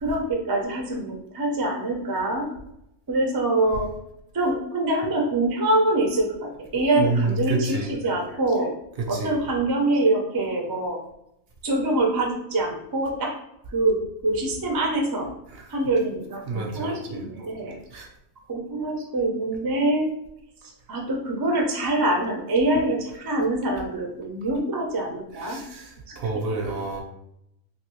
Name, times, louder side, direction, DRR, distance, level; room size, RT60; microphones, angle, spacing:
voice 1, 0.0-2.5 3.1-3.9 4.3-8.7 9.1-11.0 11.6-13.3 13.7-15.3 15.7-17.8 18.5-20.1 20.9-25.6 26.5-26.6, right 2 dB, 35° right, 0 dB, 0.3 m, -24 dB
voice 2, 7.0-7.9 9.0-9.4 15.5-15.6 16.5-17.2 17.9-18.1 25.4-27.0, right 3 dB, 60° right, 2 dB, 0.7 m, -28 dB
3.1 x 2.6 x 3.0 m, 0.78 s
omnidirectional pair, 1.3 m